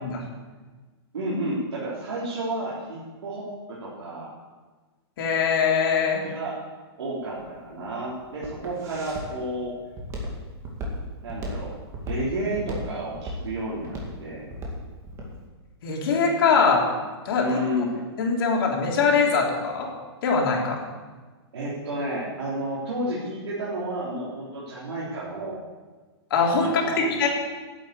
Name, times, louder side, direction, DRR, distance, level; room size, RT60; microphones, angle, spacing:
voice 1, 1.1-4.3 6.2-6.5 7.0-9.7 11.2-11.7 12.1-14.5 17.4-18.0 21.5-25.7 26.6-27.1, right 1 dB, 90° right, -8 dB, 3.7 m, -31 dB
voice 2, 5.2-6.2 15.8-16.8 17.2-17.6 18.2-19.9 20.2-20.8 26.3-26.7 27.0-27.3, left 5 dB, 55° left, -1 dB, 3.3 m, -22 dB
Walk footsteps, 7.2-15.3, equal, 20° right, 2.2 m, -35 dB
10.5 x 8.2 x 8.3 m, 1.4 s
hypercardioid pair, 160°, 14 cm